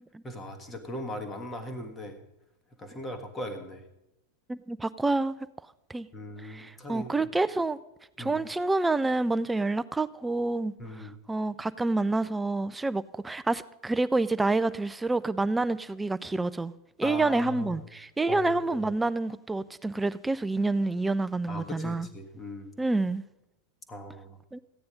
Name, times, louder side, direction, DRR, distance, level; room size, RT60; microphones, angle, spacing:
voice 1, 0.2-2.2 2.8-3.8 6.1-7.1 8.2-8.4 10.8-11.2 17.0-17.8 18.3-18.9 21.5-22.7 23.9-24.4, left 1 dB, 15° left, 1.6 m, -39 dB
voice 2, 4.5-5.3 5.9-6.1 6.4-7.8 8.2-16.7 17.0-22.1 22.8-23.2 24.5-24.6, right 2 dB, 10° right, 0.3 m, -28 dB
14.5 x 9.5 x 5.2 m
figure-of-eight pair, 90°, 0 cm